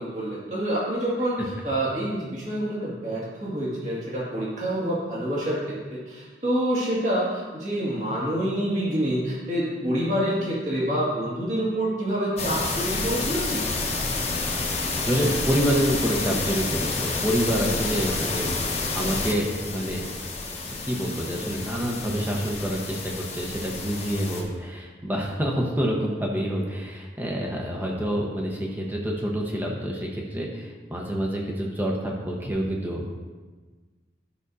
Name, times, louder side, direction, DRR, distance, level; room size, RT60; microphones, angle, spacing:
voice 1, 0.0-13.6, right 1 dB, 40° right, -7 dB, 2.1 m, -27 dB
sound 1, 12.4-24.4, left 3 dB, 35° left, 1.1 m, -29 dB
voice 2, 15.0-20.1 20.5-33.2, equal, 10° right, -2 dB, 1.1 m, -27 dB
11.5 x 6.2 x 2.7 m, 1.4 s
head